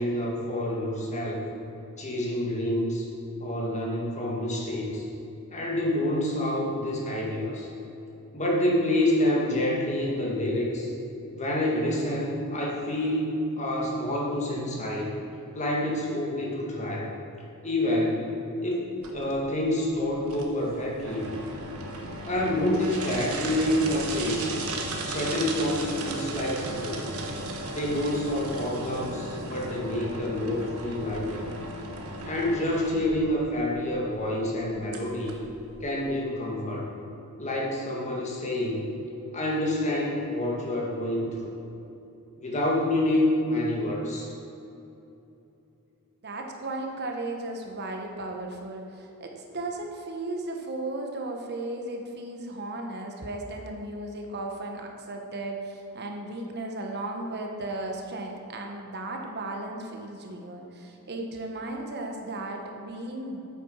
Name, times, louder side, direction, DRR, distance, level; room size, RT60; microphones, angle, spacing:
voice 1, 0.0-1.4 2.0-3.1 3.4-5.1 5.5-7.7 8.3-10.9 11.3-15.1 15.5-17.1 17.6-18.3 18.6-21.3 22.3-24.5 25.1-27.0 27.7-31.5 32.2-35.4 35.8-36.9 37.4-38.9 39.3-41.6 42.4-44.3, left 1 dB, 30° left, -2 dB, 1.9 m, -28 dB
sound 1, 19.0-36.1, right 2 dB, 75° right, 1.3 m, -36 dB
voice 2, 46.2-63.4, right 2 dB, 50° right, 2 dB, 1.1 m, -35 dB
8.6 x 8.4 x 5.6 m, 3.0 s
head